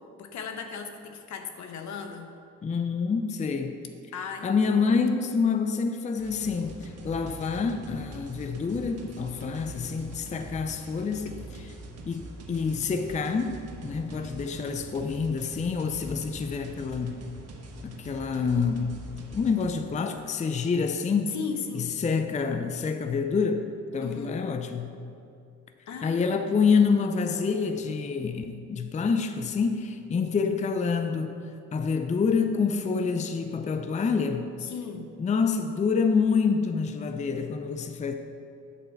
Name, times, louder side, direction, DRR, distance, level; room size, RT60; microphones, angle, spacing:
voice 1, 0.2-2.3 4.1-4.7 9.4-9.9 21.3-22.0 24.0-24.4 25.9-26.4 34.6-35.1, left 6 dB, 65° left, 6 dB, 0.9 m, -37 dB
voice 2, 2.6-3.8 4.4-11.3 12.1-17.2 17.8-18.9 19.3-21.3 21.7-23.7 23.9-24.9 26.0-31.3 31.7-34.5 35.2-38.1, left 5 dB, 25° left, 7 dB, 0.5 m, -27 dB
sound 1, 6.2-19.7, right 2 dB, 55° right, 1.2 m, -44 dB
8.3 x 4.3 x 6.9 m, 2.6 s
cardioid pair, 90°, 30 cm